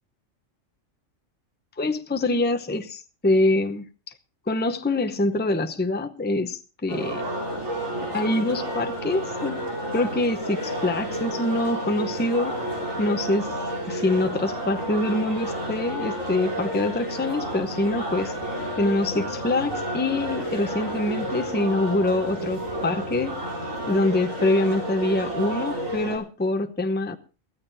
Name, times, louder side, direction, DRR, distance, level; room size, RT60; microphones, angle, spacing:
voice 1, 1.8-3.9 4.5-7.2 8.0-9.6 9.9-12.6 13.0-13.5 13.9-18.3 18.8-23.4 23.9-27.2, left 2 dB, 10° left, 0.7 m, -25 dB
sound 1, 6.9-26.2, right 1 dB, 80° right, 4.9 m, -31 dB
22.5 x 14.5 x 2.7 m
omnidirectional pair, 1.3 m